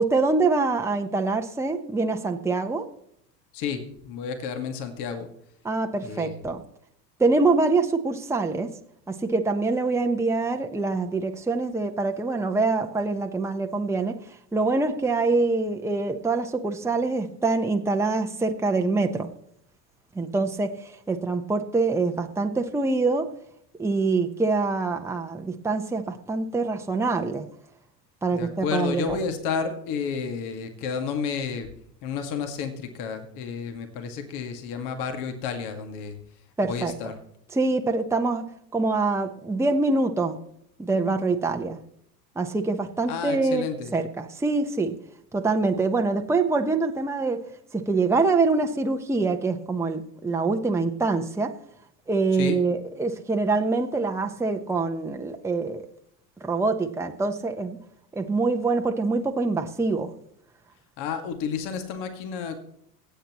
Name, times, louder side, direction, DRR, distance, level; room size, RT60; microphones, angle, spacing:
voice 1, 0.0-2.9 5.6-6.6 7.2-8.7 9.1-14.2 14.5-19.3 20.1-23.3 23.8-27.5 28.2-29.2 36.6-36.9 37.5-38.5 38.7-40.4 40.8-41.8 42.4-43.7 43.9-44.9 45.3-47.4 47.7-51.5 52.1-55.9 56.4-57.8 58.1-60.1, right 3 dB, 5° right, 4 dB, 1.1 m, -25 dB
voice 2, 3.5-5.3 6.0-6.4 28.3-31.7 32.0-36.2 36.6-37.2 43.1-43.9 52.3-52.6 61.0-62.6, left 6 dB, 50° left, 6 dB, 2.2 m, -31 dB
24.5 x 8.2 x 3.1 m, 0.70 s
hypercardioid pair, 90°, 50 cm